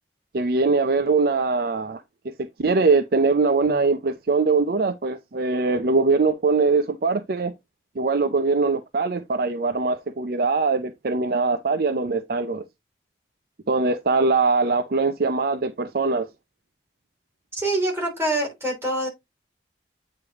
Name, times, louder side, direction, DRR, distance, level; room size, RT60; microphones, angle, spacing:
voice 1, 0.3-2.0 2.6-7.5 8.0-12.6 13.7-16.3, right 4 dB, 55° right, 0.5 m, -22 dB
voice 2, 17.5-19.1, right 1 dB, 15° right, 3.3 m, -25 dB
8.7 x 3.2 x 3.5 m
head